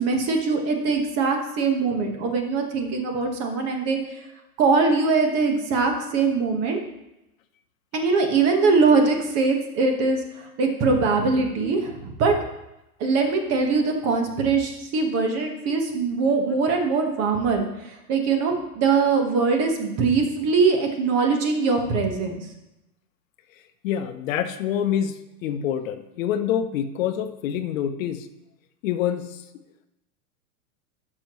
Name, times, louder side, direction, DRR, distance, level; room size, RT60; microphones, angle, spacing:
voice 1, 0.0-4.0 4.6-6.8 7.9-12.3 13.0-22.4, right 4 dB, 35° right, 3 dB, 1.4 m, -22 dB
voice 2, 23.8-28.3 28.8-29.4, left 9 dB, 65° left, 10 dB, 0.8 m, -26 dB
11.5 x 6.1 x 3.1 m, 0.91 s
supercardioid pair, 140°, 44 cm